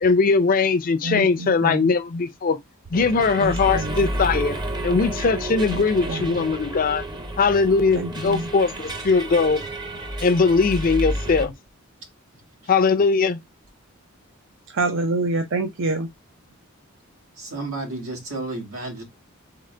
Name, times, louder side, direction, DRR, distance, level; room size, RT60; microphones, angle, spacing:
voice 1, 0.0-2.6 2.9-4.6 4.8-7.0 7.4-9.6 10.2-11.5 12.7-13.4, left 4 dB, 45° left, 0.5 m, -20 dB
voice 2, 1.0-2.0 3.4-4.1 5.7-6.5 7.9-8.5 14.7-16.1, right 2 dB, 65° right, 0.6 m, -27 dB
sound 1, 2.9-11.5, right 1 dB, 20° right, 0.7 m, -30 dB
voice 3, 17.4-19.0, right 2 dB, 85° right, 1.9 m, -32 dB
3.8 x 3.6 x 3.2 m
head